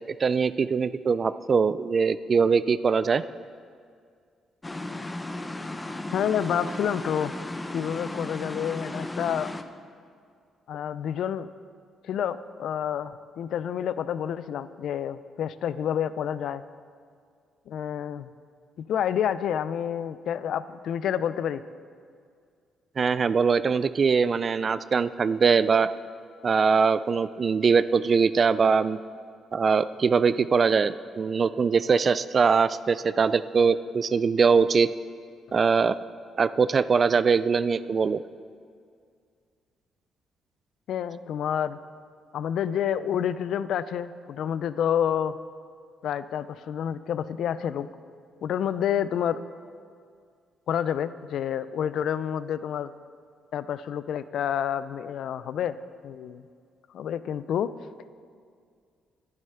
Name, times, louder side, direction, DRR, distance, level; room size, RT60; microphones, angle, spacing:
voice 1, 0.2-3.2 23.0-25.9 26.4-29.0 29.5-34.9 35.5-36.0 36.4-38.2, right 5 dB, 40° right, 15 dB, 0.3 m, -22 dB
sound 1, 4.6-9.6, left 1 dB, 15° left, 0.7 m, -35 dB
voice 2, 6.1-7.3 7.7-9.5 10.7-11.5 12.0-16.6 17.7-18.3 18.8-21.6 40.9-41.8 42.3-45.4 46.0-47.9 48.4-49.4 50.7-52.9 53.5-55.8 56.0-56.5 56.9-57.7, left 9 dB, 70° left, 15 dB, 0.4 m, -29 dB
11.0 x 10.5 x 5.7 m, 2.2 s
cardioid pair, 90°, 0 cm